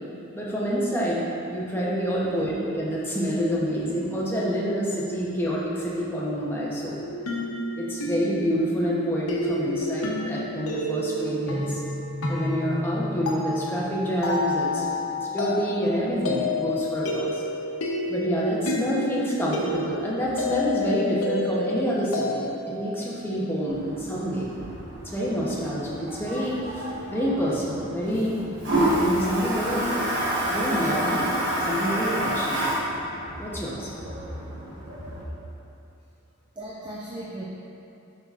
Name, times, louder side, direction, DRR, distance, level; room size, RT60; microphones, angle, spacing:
voice 1, 0.3-7.0 7.7-11.8 12.3-17.4 18.1-24.5 25.0-26.9 27.1-28.4 29.0-30.0 30.5-31.3 31.6-32.6 33.4-33.9, equal, 10° left, -6 dB, 0.8 m, -27 dB
sound 1, 7.0-22.9, left 2 dB, 85° left, 0.8 m, -30 dB
Toilet flush, 23.7-35.2, right 1 dB, 55° right, 1.3 m, -29 dB
voice 2, 36.6-37.5, right 1 dB, 20° right, -6 dB, 0.4 m, -37 dB
7.3 x 5.5 x 2.4 m, 2.7 s
head